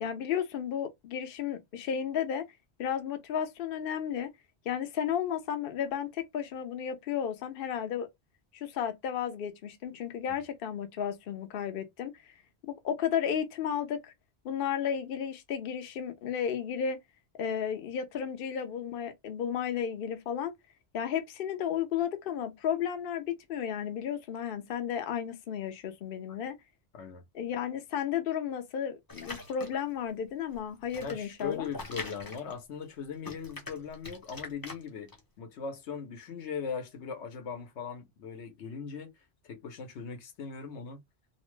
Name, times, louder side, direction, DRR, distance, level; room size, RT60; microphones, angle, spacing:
voice 1, 0.0-2.5 2.8-4.3 4.7-8.1 8.5-12.1 12.7-14.1 14.4-17.0 17.4-20.5 20.9-26.6 27.3-31.7, left 8 dB, 60° left, 0.7 m, -33 dB
sound 1, 29.1-29.9 30.5-32.9 33.2-35.2, left 3 dB, 25° left, 0.6 m, -43 dB
voice 2, 31.0-35.1 35.4-39.1 39.4-41.0, left 6 dB, 80° left, 1.0 m, -39 dB
2.8 x 2.1 x 3.1 m
omnidirectional pair, 1.2 m